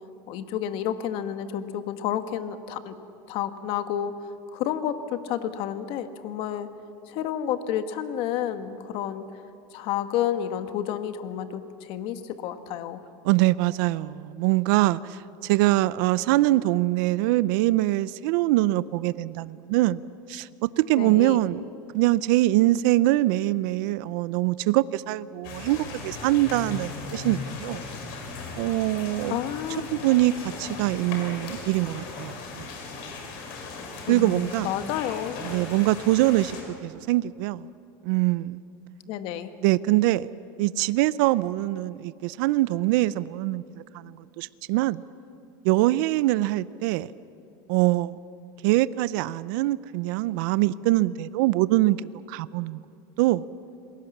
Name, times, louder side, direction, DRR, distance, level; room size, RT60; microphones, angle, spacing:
voice 1, 0.3-2.9 3.3-6.7 7.1-9.3 9.7-13.0 20.9-21.4 29.3-29.9 34.1-35.4 39.1-39.5, left 10 dB, 55° left, 10 dB, 1.5 m, -30 dB
voice 2, 13.2-20.0 20.3-20.5 20.8-27.8 28.6-29.4 29.9-32.7 34.1-34.7 35.4-37.7 38.0-38.6 39.6-40.3 40.6-45.0 45.6-47.1 47.7-48.1 48.6-52.8 53.2-53.4, right 17 dB, 70° right, 18 dB, 0.6 m, -23 dB
sound 1, 25.4-36.6, left 4 dB, 70° left, 5.0 m, -37 dB
27.5 x 20.5 x 7.3 m, 2.6 s
supercardioid pair, 150°, 11 cm